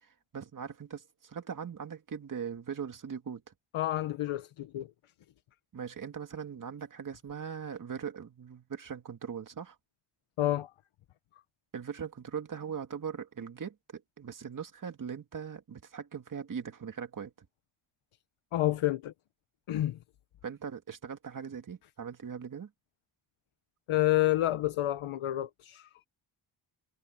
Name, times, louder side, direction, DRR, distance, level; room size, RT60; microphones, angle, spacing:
voice 1, 0.0-3.4 5.7-9.8 11.7-17.3 20.4-22.7, right 7 dB, 40° right, 2.2 m, -40 dB
voice 2, 3.7-4.9 10.4-10.7 18.5-19.1 19.7-20.0 23.9-25.9, left 14 dB, 90° left, 1.2 m, -29 dB
wide cardioid pair, 165°, 49 cm